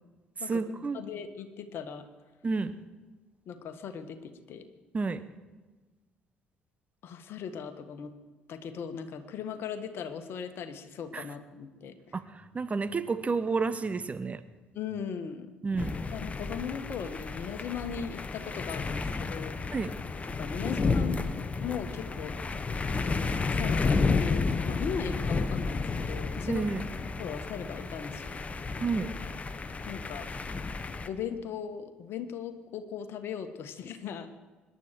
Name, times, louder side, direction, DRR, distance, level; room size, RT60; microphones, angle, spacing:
voice 1, 0.4-1.0 2.4-2.8 4.9-5.2 11.1-11.2 12.1-14.4 15.6-16.0 19.7-19.9 26.5-26.9 28.8-29.1, right 4 dB, 30° right, 12 dB, 1.0 m, -30 dB
voice 2, 0.9-2.0 3.4-4.6 7.0-8.1 8.5-11.9 14.7-15.6 16.1-19.6 20.3-22.3 23.0-26.6 27.2-28.3 29.9-30.3 31.0-34.3, left 7 dB, 55° left, 9 dB, 1.6 m, -38 dB
sound 1, 15.8-31.1, left 4 dB, 30° left, 1.2 m, -32 dB
26.0 x 11.5 x 4.6 m, 1.3 s
figure-of-eight pair, 50°, 5 cm